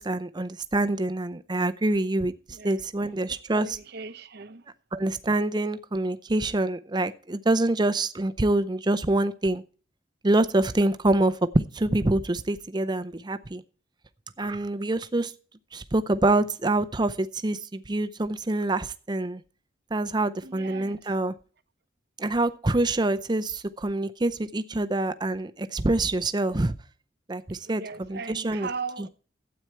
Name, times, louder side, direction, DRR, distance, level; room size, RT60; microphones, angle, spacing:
voice 1, 0.0-3.7 4.9-9.6 10.2-13.6 14.4-15.3 15.7-19.4 19.9-21.3 22.2-26.7 27.3-28.7, right 2 dB, 20° right, 0.6 m, -26 dB
voice 2, 2.5-2.8 3.3-4.6 20.4-21.1 27.6-29.1, right 4 dB, 55° right, 0.8 m, -38 dB
12.5 x 8.8 x 4.5 m
head